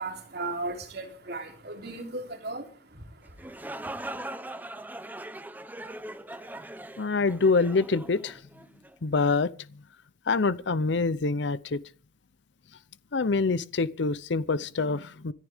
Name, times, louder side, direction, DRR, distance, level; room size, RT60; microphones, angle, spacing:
voice 1, 0.0-4.2, right 2 dB, 60° right, 3.4 m, -37 dB
sound 1, 3.2-8.9, right 1 dB, 10° right, 0.9 m, -40 dB
voice 2, 7.0-8.4 9.0-9.5 10.3-11.8 13.1-15.3, left 4 dB, 70° left, 0.7 m, -25 dB
26.5 x 10.5 x 3.6 m
head